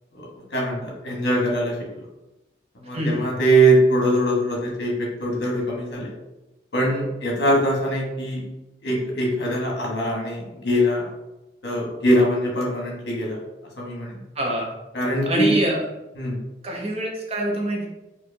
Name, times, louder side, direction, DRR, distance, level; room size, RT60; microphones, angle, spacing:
voice 1, 0.5-1.7 2.7-6.1 6.7-8.4 8.8-11.1 11.6-13.4 13.8-14.2 14.9-15.6 16.2-16.4, right 1 dB, 75° left, -2 dB, 1.1 m, -22 dB
voice 2, 2.9-3.3 14.4-14.7 15.3-15.8 16.6-17.9, right 1 dB, 35° right, -1 dB, 0.7 m, -25 dB
4.5 x 2.4 x 2.6 m, 0.99 s
head